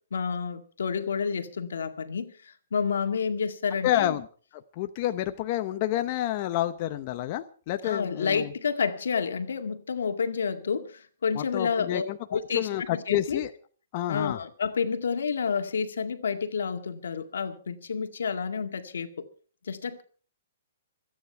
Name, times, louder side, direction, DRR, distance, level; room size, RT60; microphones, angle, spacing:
voice 1, 0.1-4.1 7.8-12.1 12.3-13.4 14.1-19.3 19.6-20.0, left 6 dB, 85° left, 2.0 m, -29 dB
voice 2, 3.8-4.3 4.7-8.5 11.3-13.5 13.9-14.4, left 13 dB, 35° left, 0.8 m, -29 dB
26.5 x 9.6 x 4.6 m
hypercardioid pair, 160°, 0 cm